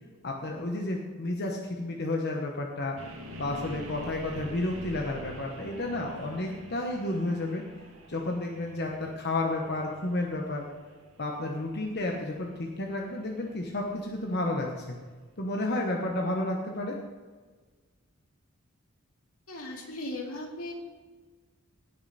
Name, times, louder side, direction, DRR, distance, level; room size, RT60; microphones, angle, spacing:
voice 1, 0.2-3.0 3.4-7.6 8.1-10.7 11.2-15.0 15.4-17.0, left 2 dB, 50° left, 0 dB, 1.2 m, -31 dB
sound 1, 3.0-14.9, equal, 65° right, 2.1 m, -47 dB
voice 2, 19.5-20.7, left 1 dB, 80° left, 0 dB, 2.4 m, -37 dB
18.0 x 6.8 x 4.2 m, 1.4 s
head